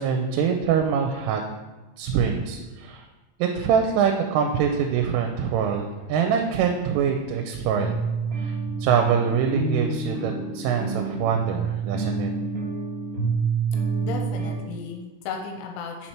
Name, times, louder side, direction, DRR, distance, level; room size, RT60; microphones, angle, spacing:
voice 1, 0.0-1.4 2.0-3.0 3.4-7.9 8.4-8.6 8.8-12.3, right 7 dB, 85° right, 3 dB, 3.1 m, -24 dB
sound 1, 6.0-6.1 6.6-6.7 7.1-7.2 7.7-14.5, right 4 dB, 60° right, 1.9 m, -28 dB
voice 2, 14.0-16.1, left 5 dB, 85° left, 3 dB, 3.0 m, -35 dB
6.7 x 4.3 x 4.4 m, 1.2 s
omnidirectional pair, 5.6 m